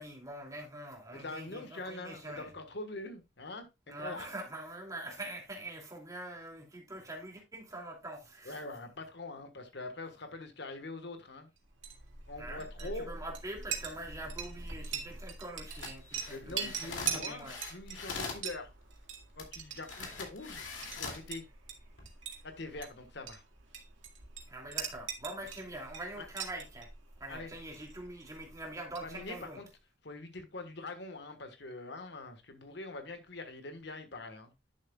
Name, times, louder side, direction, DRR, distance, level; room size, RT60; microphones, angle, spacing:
voice 1, 0.0-2.5 3.9-8.6 12.4-17.6 20.0-20.1 24.5-26.9 27.2-29.6, right 1 dB, 20° right, 2.7 m, -44 dB
voice 2, 1.1-4.3 8.4-11.5 12.3-13.2 16.3-18.7 19.4-21.5 22.4-23.4 26.1-26.3 27.3-27.5 29.0-29.7 30.0-34.5, left 2 dB, 65° left, 1.4 m, -44 dB
Chink clink, 11.7-29.5, right 7 dB, 85° right, 2.2 m, -43 dB
sound 1, 15.7-18.5 19.4-19.5 19.8-21.3 21.8-22.1, left 4 dB, 85° left, 2.6 m, -42 dB
11.0 x 7.2 x 2.3 m
head